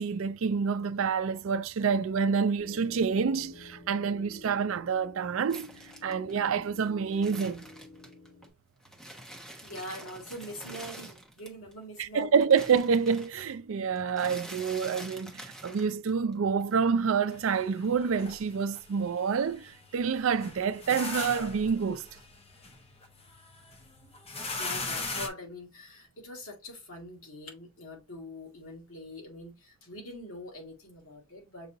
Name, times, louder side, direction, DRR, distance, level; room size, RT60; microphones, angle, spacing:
voice 1, 0.0-5.7 6.0-7.6 12.0-22.1, right 6 dB, 75° right, 0.4 m, -28 dB
sound 1, 2.6-8.5, left 2 dB, 60° left, 2.5 m, -50 dB
sound 2, 5.5-8.5 8.8-11.7 12.0-16.3 16.6-17.5, right 1 dB, 5° left, 0.9 m, -46 dB
voice 2, 9.6-12.4 24.4-31.8, left 1 dB, 80° left, 1.9 m, -43 dB
sound 3, 17.3-25.3, left 3 dB, 30° left, 0.8 m, -40 dB
6.8 x 2.8 x 2.6 m
head